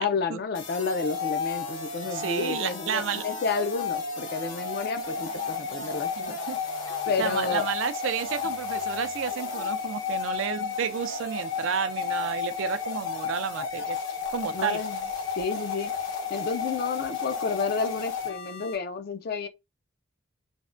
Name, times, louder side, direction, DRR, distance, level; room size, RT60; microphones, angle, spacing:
voice 1, 0.0-6.4 7.1-7.7 14.5-15.0 15.4-15.9 16.3-19.5, left 4 dB, 50° left, 0.4 m, -31 dB
sound 1, 0.5-18.8, left 5 dB, 80° left, 1.1 m, -32 dB
voice 2, 2.0-3.3 6.3-6.6 6.9-14.0 14.3-14.8, right 7 dB, 75° right, 0.4 m, -31 dB
3.3 x 2.1 x 2.5 m
head